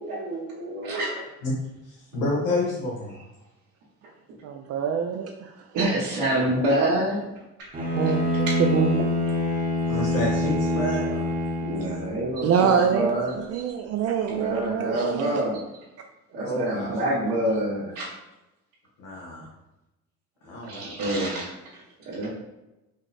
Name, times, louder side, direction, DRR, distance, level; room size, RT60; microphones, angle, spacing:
voice 1, 0.0-1.2 5.7-7.3 7.6-7.7 8.5-8.6 11.6-13.7 14.3-15.6 16.3-18.1 20.6-22.3, right 1 dB, 85° right, -9 dB, 1.3 m, -27 dB
voice 2, 1.9-3.1 9.9-11.3 16.4-17.3 19.0-19.5 20.4-21.3, left 1 dB, 90° left, -5 dB, 1.1 m, -30 dB
voice 3, 4.4-5.5 7.9-9.3 12.4-15.4, right 7 dB, 55° right, 3 dB, 0.4 m, -25 dB
Bowed string instrument, 7.7-12.2, left 1 dB, 30° right, 0.9 m, -25 dB
4.8 x 2.1 x 4.1 m, 0.95 s
cardioid pair, 115°, 30 cm